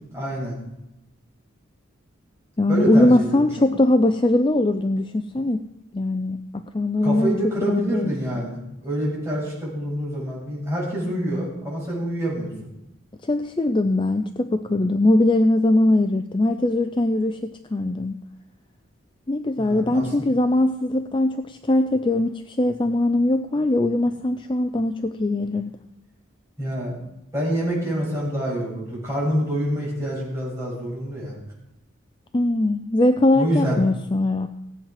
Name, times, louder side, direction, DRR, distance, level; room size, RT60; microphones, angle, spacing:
voice 1, 0.1-0.6 2.7-3.7 7.0-12.7 19.6-20.1 26.6-26.9 27.3-31.3 33.3-33.8, equal, 15° right, -6 dB, 7.2 m, -27 dB
voice 2, 2.6-5.6 5.9-6.4 6.7-7.4 7.6-8.1 13.2-18.2 19.3-25.7 32.3-34.5, left 1 dB, 25° left, 7 dB, 0.5 m, -21 dB
17.5 x 9.0 x 5.8 m, 0.86 s
head